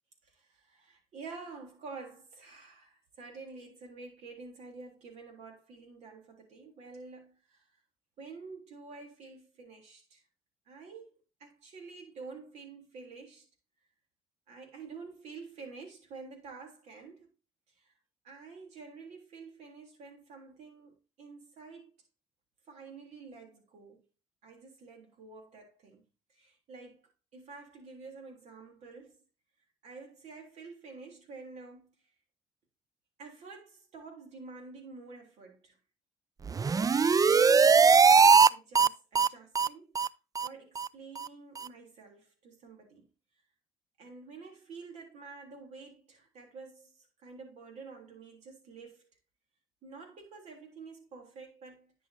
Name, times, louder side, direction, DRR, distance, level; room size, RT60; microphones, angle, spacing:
voice 1, 0.2-7.7 8.2-10.2 10.7-13.5 14.5-17.3 17.8-17.9 18.2-21.9 22.7-24.0 24.4-26.0 26.3-29.2 29.8-31.9 33.2-35.7 36.9-40.0 40.4-43.1 44.0-49.1 49.8-51.9, right 4 dB, 75° right, 3.4 m, -49 dB
sound 1, 36.5-38.5 38.7-38.9 39.1-39.3 39.5-39.7 39.9-40.1 40.3-40.5 40.8-40.9 41.2-41.3 41.6-41.7, right 5 dB, 30° right, 0.4 m, -21 dB
10.5 x 6.3 x 2.8 m
hypercardioid pair, 50°, 12 cm